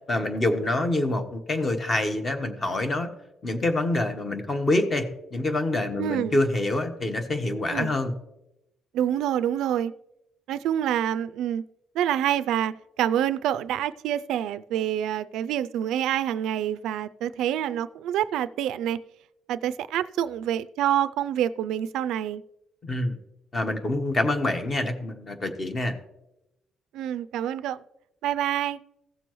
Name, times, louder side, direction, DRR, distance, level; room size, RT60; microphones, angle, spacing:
voice 1, 0.1-3.1 3.4-8.1 22.8-23.2 23.5-26.0, left 2 dB, 30° left, 1.1 m, -26 dB
voice 2, 6.0-6.4 7.7-7.9 8.9-9.9 10.5-11.6 11.9-19.0 19.5-22.4 26.9-27.8 28.2-28.8, right 10 dB, 85° right, 0.3 m, -27 dB
16.0 x 6.9 x 3.1 m
cardioid pair, 130°, 0 cm